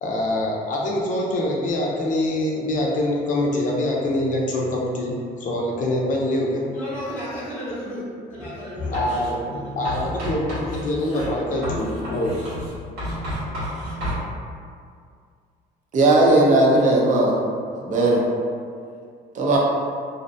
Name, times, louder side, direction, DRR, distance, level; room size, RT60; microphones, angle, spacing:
voice 1, 0.0-5.1 5.4-6.7 8.8-12.4, left 1 dB, 50° left, -2 dB, 0.5 m, -24 dB
voice 2, 6.7-10.4 11.0-11.6, equal, ahead, -13 dB, 0.8 m, -35 dB
Writing, 8.9-9.3 9.8-14.2, equal, 80° right, 1.4 m, -31 dB
voice 3, 15.9-17.4 17.7-18.2 19.3-19.6, right 2 dB, 50° right, -3 dB, 0.6 m, -17 dB
2.6 x 2.1 x 2.6 m, 2.2 s
cardioid pair, 110°, 17 cm